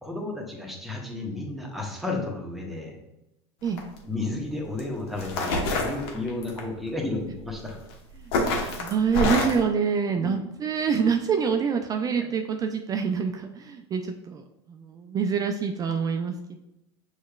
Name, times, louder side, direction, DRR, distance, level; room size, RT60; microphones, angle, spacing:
voice 1, 0.0-3.0 4.0-7.8 10.1-10.3, left 2 dB, ahead, -1 dB, 1.1 m, -32 dB
sound 1, 3.7-4.0 4.8-4.9 5.2-6.6 7.7-7.9 8.3-9.6, left 2 dB, 65° left, 1.1 m, -26 dB
voice 2, 8.8-14.4 14.7-16.6, right 6 dB, 25° right, 5 dB, 0.4 m, -26 dB
6.3 x 3.1 x 2.3 m, 0.87 s
hypercardioid pair, 105°, 14 cm